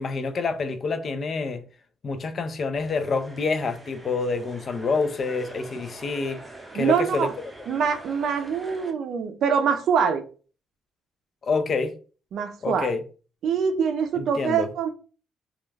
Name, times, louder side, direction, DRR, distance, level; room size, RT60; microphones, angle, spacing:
voice 1, 0.0-1.6 2.0-6.4 6.7-7.3 11.4-11.9 12.6-13.0 14.1-14.7, left 4 dB, 50° left, 0.4 m, -27 dB
sound 1, 2.8-8.9, right 2 dB, 15° right, 0.7 m, -44 dB
voice 2, 6.7-7.3 7.7-10.2 12.3-12.9 13.4-14.9, right 6 dB, 70° right, 0.4 m, -24 dB
2.3 x 2.2 x 3.2 m
cardioid pair, 90°, 0 cm